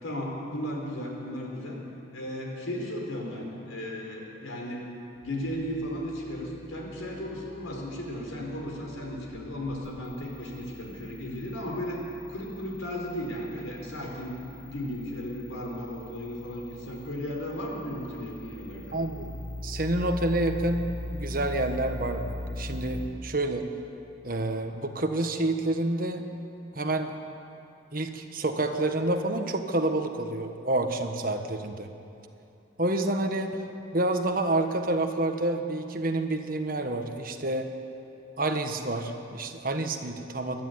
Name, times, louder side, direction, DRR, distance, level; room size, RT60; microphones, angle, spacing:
voice 1, 0.0-1.8 2.1-4.8 5.2-12.0 12.3-14.4 14.7-19.0, equal, 85° left, -1 dB, 4.8 m, -35 dB
sound 1, 5.2-23.0, left 1 dB, 10° right, 6.7 m, -41 dB
voice 2, 18.9-19.3 19.6-23.7 24.2-26.3 26.7-27.1 27.9-31.9 32.8-33.6 33.9-37.7 38.4-40.6, right 2 dB, 45° right, 5 dB, 1.4 m, -28 dB
22.0 x 13.0 x 9.7 m, 2.8 s
head